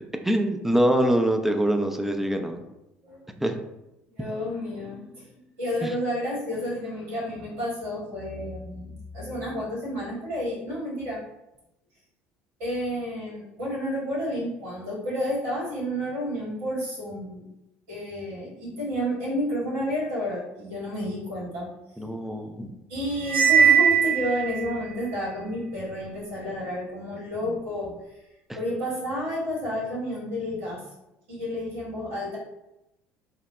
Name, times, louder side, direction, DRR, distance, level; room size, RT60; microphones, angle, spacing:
voice 1, 0.2-2.6 3.4-3.6 5.8-5.9 22.0-22.7, right 1 dB, 5° right, 5 dB, 0.3 m, -24 dB
voice 2, 4.2-5.3 5.6-11.2 12.6-17.4 17.9-21.7 22.9-28.0 28.5-30.8 31.3-32.4, equal, 70° right, -7 dB, 1.4 m, -30 dB
Cymbal, 23.2-24.7, right 7 dB, 35° right, 0.8 m, -19 dB
2.8 x 2.1 x 2.2 m, 0.90 s
figure-of-eight pair, 60°, 6 cm